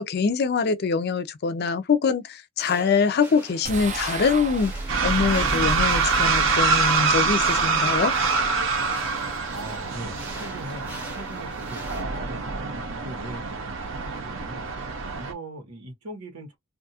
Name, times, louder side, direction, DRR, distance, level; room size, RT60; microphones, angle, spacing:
voice 1, 0.0-4.7 5.0-8.1, left 5 dB, 45° left, 0.4 m, -24 dB
sound 1, 2.6-12.0, right 1 dB, 10° right, 0.8 m, -44 dB
sound 2, 3.6-9.0, right 3 dB, 35° right, 0.5 m, -35 dB
sound 3, 4.9-15.3, right 4 dB, 60° right, 0.8 m, -25 dB
voice 2, 9.5-11.9 12.1-14.7 15.1-16.6, right 1 dB, 90° right, 1.3 m, -40 dB
2.5 x 2.3 x 2.7 m
head